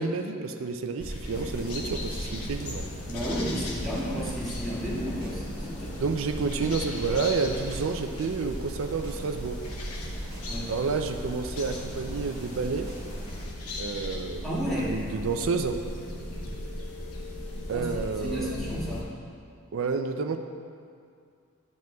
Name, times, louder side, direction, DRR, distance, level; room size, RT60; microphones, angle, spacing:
voice 1, 0.0-2.9 6.0-9.6 10.7-12.9 13.8-15.8 17.7-18.6 19.7-20.4, right 4 dB, 65° right, 6 dB, 0.4 m, -30 dB
sound 1, 1.0-19.0, left 1 dB, 85° left, 1.0 m, -37 dB
sound 2, 1.3-13.4, equal, 35° left, 1.4 m, -44 dB
voice 2, 3.1-6.0 10.4-10.7 14.4-15.3 17.7-17.9 18.2-19.1, equal, ahead, -10 dB, 1.7 m, -32 dB
sound 3, 3.3-5.4 5.8-8.0 8.4-10.6 10.9-13.2, right 1 dB, 25° right, 2.0 m, -42 dB
11.0 x 7.6 x 2.3 m, 2.3 s
head